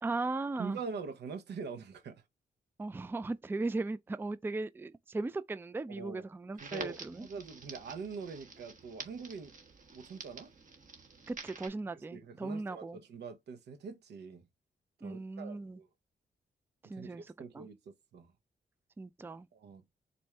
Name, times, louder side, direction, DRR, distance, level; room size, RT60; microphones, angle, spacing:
voice 1, 0.0-0.8 2.8-7.3 11.3-13.0 15.0-15.8 16.8-17.7 19.0-19.5, right 3 dB, 10° right, 0.4 m, -37 dB
voice 2, 0.6-2.2 5.9-6.2 6.6-9.6 9.9-10.5 11.9-14.4 15.0-15.9 16.9-18.3 19.5-19.8, right 5 dB, 85° right, 1.0 m, -44 dB
Crackle, 6.6-11.7, right 4 dB, 50° right, 1.3 m, -49 dB
4.3 x 2.6 x 3.3 m
cardioid pair, 65°, 17 cm